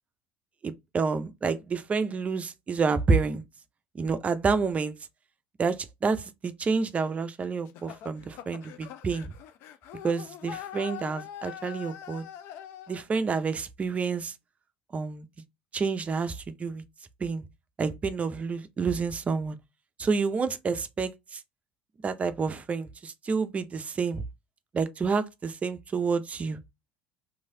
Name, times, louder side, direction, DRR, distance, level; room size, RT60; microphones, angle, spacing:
voice 1, 0.6-3.4 3.9-4.9 5.6-9.3 10.0-12.2 12.9-14.3 14.9-15.3 15.7-16.8 17.2-17.4 17.8-19.6 20.0-21.4 22.0-24.2 24.7-26.6, right 4 dB, 30° right, 0.5 m, -29 dB
sound 1, 7.7-13.0, left 10 dB, 60° left, 0.4 m, -43 dB
3.1 x 2.6 x 2.6 m
hypercardioid pair, 65°, 5 cm